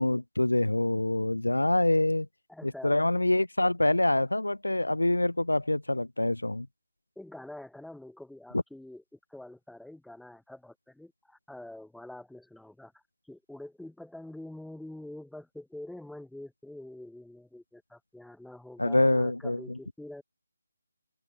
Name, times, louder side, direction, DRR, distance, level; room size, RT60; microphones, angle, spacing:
voice 1, 0.0-2.3 2.6-6.7 18.8-19.6, left 1 dB, 85° left, 2.2 m, -25 dB
voice 2, 2.5-3.1 7.2-20.2, left 1 dB, ahead, 7.9 m, -46 dB
figure-of-eight pair, 155°, 0 cm